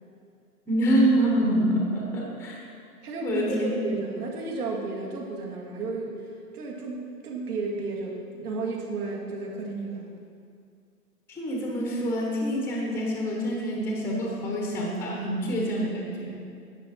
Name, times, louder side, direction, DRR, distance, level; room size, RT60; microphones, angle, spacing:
voice 1, 0.7-2.6 3.2-3.8 11.3-16.4, equal, 5° left, -2 dB, 0.9 m, -26 dB
voice 2, 3.0-6.2 6.5-10.0, right 3 dB, 65° right, -1 dB, 2.1 m, -33 dB
10.5 x 7.4 x 4.2 m, 2.3 s
hypercardioid pair, 140°, 49 cm